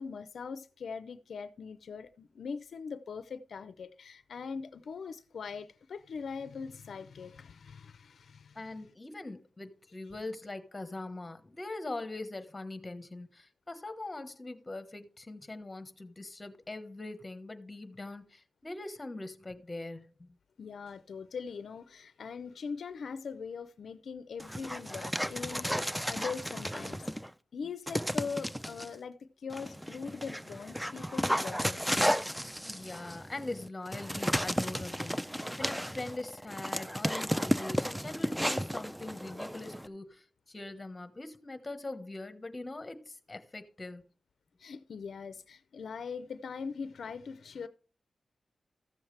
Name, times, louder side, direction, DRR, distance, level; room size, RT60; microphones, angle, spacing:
voice 1, 0.0-8.6 20.6-27.1 27.5-31.8 32.7-32.9 44.6-47.7, left 5 dB, 75° left, 0.5 m, -41 dB
voice 2, 8.5-20.3 32.6-44.0, left 2 dB, 25° left, 1.2 m, -42 dB
Dog, 24.4-27.3 27.9-28.9 29.5-39.9, equal, ahead, 0.4 m, -33 dB
14.0 x 7.2 x 3.3 m
cardioid pair, 80°, 0 cm